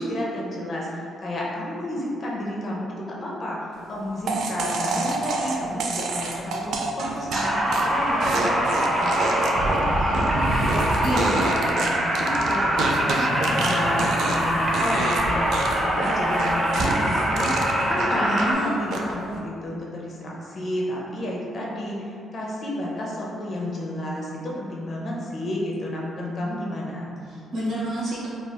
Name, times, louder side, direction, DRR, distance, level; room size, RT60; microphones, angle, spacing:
voice 1, 0.0-3.6 3.9-8.6 9.0-27.1, left 1 dB, 45° left, -4 dB, 0.6 m, -31 dB
sound 1, 4.3-14.5 14.7-15.2 15.5-18.5 18.9-19.3, right 3 dB, 75° right, 0.3 m, -28 dB
sound 2, 7.3-18.5, right 1 dB, 30° right, 0.6 m, -24 dB
sound 3, 10.3-11.6 12.3-16.8 17.1-17.2, equal, 80° left, 1.0 m, -34 dB
voice 2, 11.0-11.3 18.1-18.7 27.3-28.3, right 1 dB, 55° right, -11 dB, 1.0 m, -28 dB
3.4 x 2.4 x 2.2 m, 2.4 s
cardioid pair, 90°, 0 cm